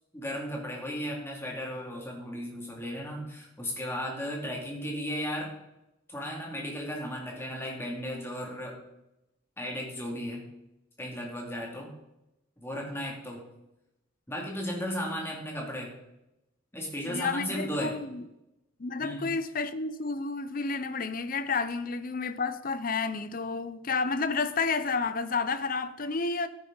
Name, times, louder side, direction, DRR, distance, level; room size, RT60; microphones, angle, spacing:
voice 1, 0.1-5.5 6.1-8.8 9.6-10.4 11.0-11.9 12.6-13.4 14.3-16.0 16.7-18.0 19.0-19.3, equal, 10° left, 2.5 m, -35 dB
voice 2, 17.1-18.2 18.8-26.5, left 4 dB, 40° left, 0.6 m, -30 dB
13.5 x 9.8 x 3.9 m
head